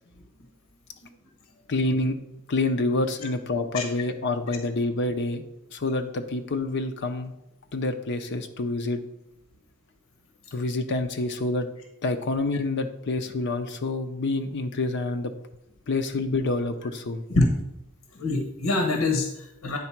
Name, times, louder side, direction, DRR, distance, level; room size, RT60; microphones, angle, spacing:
voice 1, 1.7-2.2 2.5-5.4 5.7-7.3 7.7-9.0 10.5-11.7 12.0-15.3 15.9-17.2, left 2 dB, 55° left, 6 dB, 0.6 m, -27 dB
voice 2, 18.2-19.8, left 2 dB, 80° left, 4 dB, 1.1 m, -24 dB
9.4 x 3.9 x 5.8 m, 0.86 s
head